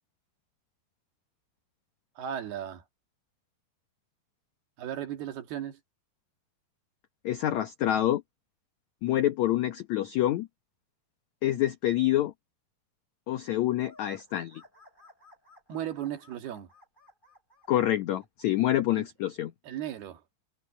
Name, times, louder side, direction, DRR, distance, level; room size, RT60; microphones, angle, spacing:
voice 1, 2.2-2.8 4.8-5.8 15.7-16.7 18.9-19.1 19.6-20.2, right 10 dB, 70° right, 3.9 m, -36 dB
voice 2, 7.2-8.2 9.0-10.5 11.4-12.3 13.3-14.6 17.7-19.5, left 13 dB, 85° left, 1.6 m, -27 dB
sound 1, 13.8-18.6, left 2 dB, 10° left, 8.0 m, -58 dB
omnidirectional pair, 4.7 m